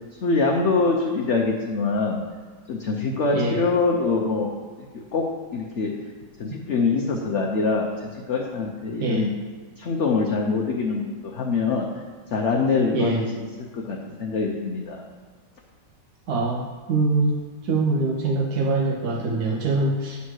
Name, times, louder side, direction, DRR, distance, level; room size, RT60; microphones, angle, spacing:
voice 1, 0.2-2.2 2.7-5.2 5.5-5.9 6.4-9.3 9.8-11.9 12.3-15.0, left 4 dB, 55° left, 0 dB, 0.8 m, -24 dB
voice 2, 12.9-13.2 16.3-17.4 17.6-20.2, right 3 dB, 65° right, -1 dB, 1.2 m, -23 dB
9.5 x 4.2 x 6.2 m, 1.5 s
omnidirectional pair, 2.0 m